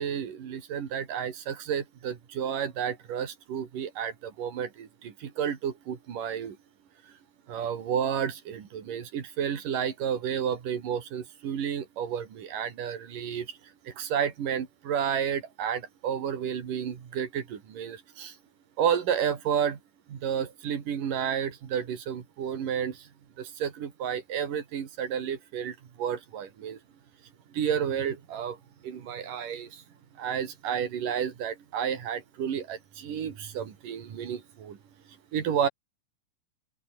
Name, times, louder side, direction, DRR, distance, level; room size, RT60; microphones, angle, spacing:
voice 1, 0.0-6.6 7.5-13.6 13.8-18.4 18.8-19.8 20.1-23.1 23.4-26.8 27.5-28.6 28.8-29.8 30.2-34.8 35.3-35.7, right 8 dB, 70° right, 4.3 m, -31 dB
open air
omnidirectional pair, 4.0 m